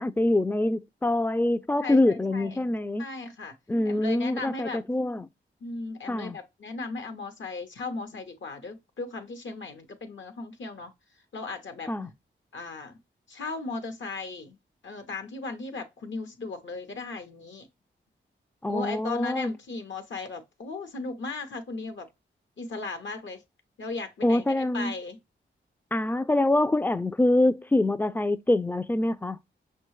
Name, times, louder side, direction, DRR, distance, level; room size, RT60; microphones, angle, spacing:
voice 1, 0.0-3.0 3.7-5.3 6.1-6.4 11.9-12.1 18.6-19.5 24.2-24.9 25.9-29.4, left 1 dB, 10° left, 0.3 m, -25 dB
voice 2, 1.8-2.6 3.0-3.6 3.9-4.8 5.6-10.9 11.3-11.9 12.5-13.0 13.3-14.6 14.8-17.7 18.7-22.1 22.6-23.4 23.8-25.2, left 3 dB, 65° left, 0.8 m, -36 dB
5.5 x 2.2 x 3.1 m
cardioid pair, 55°, 21 cm